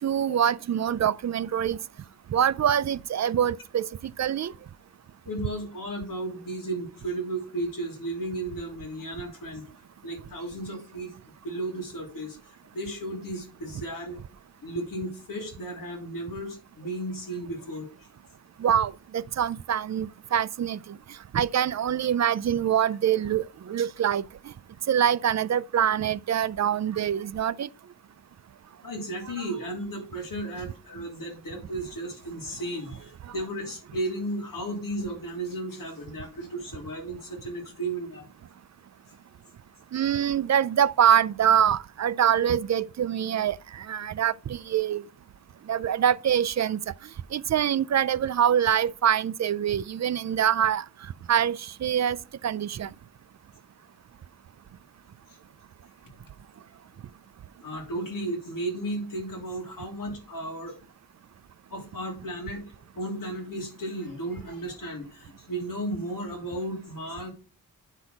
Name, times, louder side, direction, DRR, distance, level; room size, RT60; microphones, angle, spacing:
voice 1, 0.0-1.8 2.3-3.9 4.2-4.5 18.6-20.9 21.3-24.2 24.9-27.7 29.4-29.5 39.9-45.0 45.7-46.8 47.3-50.8 51.3-52.2 52.4-52.9, right 9 dB, 50° right, 0.5 m, -24 dB
voice 2, 5.3-9.6 10.0-11.1 11.4-12.4 12.7-14.2 14.6-17.9 28.8-38.2 57.6-60.8 61.7-62.6 62.9-67.3, right 1 dB, 65° left, 3.3 m, -34 dB
9.9 x 6.1 x 5.2 m
wide cardioid pair, 120°, 35 cm